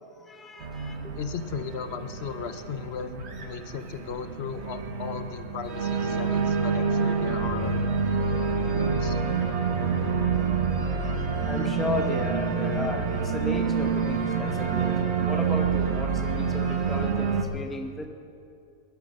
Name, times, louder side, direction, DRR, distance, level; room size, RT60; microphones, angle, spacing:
voice 1, 0.1-1.2 11.2-18.0, left 2 dB, ahead, 4 dB, 0.8 m, -35 dB
Organ, 0.6-17.4, right 5 dB, 50° right, 1.4 m, -27 dB
voice 2, 1.2-7.9 8.5-9.2, left 6 dB, 55° left, 10 dB, 0.9 m, -36 dB
18.0 x 11.5 x 6.4 m, 2.5 s
omnidirectional pair, 1.5 m